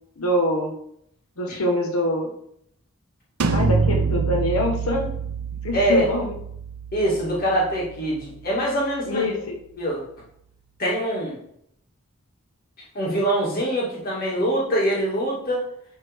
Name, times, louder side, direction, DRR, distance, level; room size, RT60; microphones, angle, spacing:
voice 1, 0.2-0.8 1.4-2.3 3.5-5.1 5.6-6.4 9.1-9.5, left 1 dB, 80° left, 2 dB, 1.4 m, -24 dB
sound 1, 3.4-9.0, right 5 dB, 80° right, 0.6 m, -27 dB
voice 2, 5.7-6.1 6.9-9.3 9.8-10.0 10.8-11.4 12.9-15.6, right 1 dB, 45° left, -5 dB, 2.3 m, -24 dB
10.5 x 4.1 x 3.6 m, 0.72 s
head